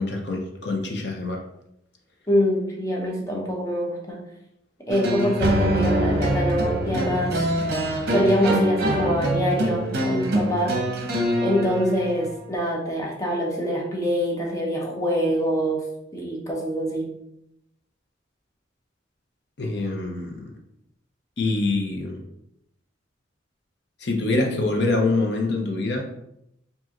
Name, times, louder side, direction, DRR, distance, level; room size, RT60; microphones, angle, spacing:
voice 1, 0.0-1.4 19.6-20.4 21.4-22.2 24.0-26.1, left 2 dB, 60° left, 2 dB, 0.7 m, -25 dB
voice 2, 2.3-4.2 4.9-7.4 8.1-10.8 11.4-15.8 16.1-17.1, equal, 15° left, -2 dB, 0.8 m, -24 dB
sound 1, 4.9-12.3, right 1 dB, 55° right, 0.7 m, -24 dB
4.6 x 2.7 x 2.9 m, 0.80 s
head